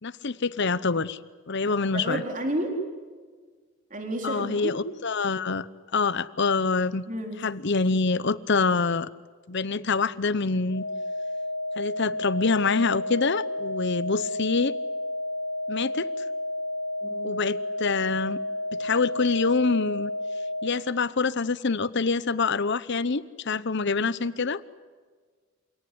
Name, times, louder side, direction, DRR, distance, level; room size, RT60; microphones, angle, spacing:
voice 1, 0.0-1.2 1.5-2.2 4.2-5.7 5.9-7.0 7.4-9.1 9.5-10.8 11.8-14.7 15.7-16.1 17.2-18.4 18.8-20.1 20.6-24.6, left 4 dB, 55° left, 17 dB, 0.8 m, -26 dB
voice 2, 1.6-2.7 3.9-4.7 7.1-7.4 17.0-17.4 24.1-24.2, right 1 dB, 35° right, 3 dB, 4.0 m, -32 dB
sound 1, 10.7-20.7, left 1 dB, 80° left, 4.5 m, -31 dB
28.0 x 18.0 x 9.9 m, 1.5 s
head